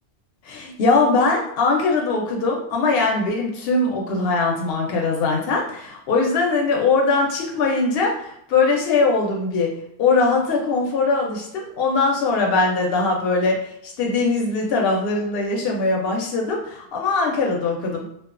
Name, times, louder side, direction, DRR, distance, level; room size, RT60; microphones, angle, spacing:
voice 1, 0.4-9.7 10.0-13.6 13.8-18.0, left 3 dB, 65° left, 0 dB, 0.8 m, -21 dB
2.3 x 2.2 x 2.4 m, 0.73 s
omnidirectional pair, 1.1 m